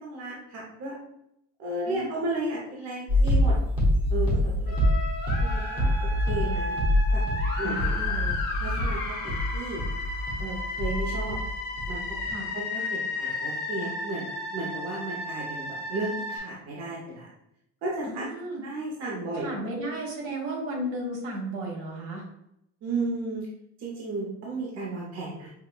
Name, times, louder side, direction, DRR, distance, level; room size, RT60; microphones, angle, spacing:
voice 1, 0.0-0.9 1.6-3.5 4.1-4.8 5.4-5.9 6.3-6.8 7.1-7.2 7.6-8.2 8.6-9.8 10.4-11.4 11.9-12.0 12.5-17.3 17.8-18.3 18.6-19.9 22.8-23.5 23.8-25.5, right 2 dB, 60° right, -4 dB, 0.9 m, -34 dB
sound 1, 3.1-11.5 11.8-12.3, left 1 dB, 15° right, 1.0 m, -25 dB
sound 2, 4.7-16.4, left 2 dB, 35° left, 0.9 m, -33 dB
voice 2, 7.6-8.4 12.3-12.5 18.1-18.6 19.3-22.2, right 1 dB, 85° right, -1 dB, 1.3 m, -34 dB
5.5 x 2.2 x 2.3 m, 0.79 s
cardioid pair, 170°, 29 cm